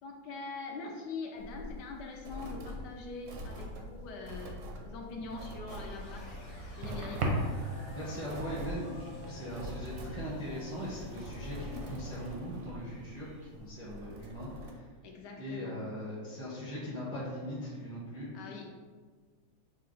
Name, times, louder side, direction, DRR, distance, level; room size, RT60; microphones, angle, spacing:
voice 1, 0.0-6.4 6.8-7.3 15.0-15.8 18.3-18.7, left 4 dB, 75° left, 1 dB, 1.1 m, -43 dB
Old car seat creaking, 1.4-14.7, equal, 70° right, 0.7 m, -45 dB
sound 1, 5.3-13.5, right 1 dB, 90° right, 1.5 m, -41 dB
sound 2, 5.7-12.4, left 1 dB, 50° left, 1.2 m, -49 dB
voice 2, 7.9-14.8 15.4-18.3, equal, 15° right, -6 dB, 0.5 m, -40 dB
5.5 x 2.2 x 3.8 m, 1.5 s
omnidirectional pair, 2.0 m